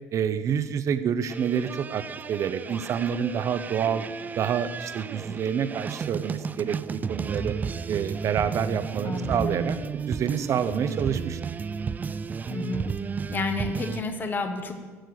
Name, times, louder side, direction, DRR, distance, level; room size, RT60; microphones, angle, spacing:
voice 1, 0.1-4.0 4.4-7.6 7.9-11.4, right 8 dB, 50° right, 12 dB, 0.9 m, -28 dB
sound 1, 1.3-14.0, right 5 dB, 25° right, 0.4 m, -33 dB
voice 2, 9.0-9.6 12.5-12.9 13.3-14.7, left 3 dB, 30° left, 6 dB, 1.3 m, -31 dB
14.0 x 6.7 x 8.0 m, 1.4 s
cardioid pair, 120°, 7 cm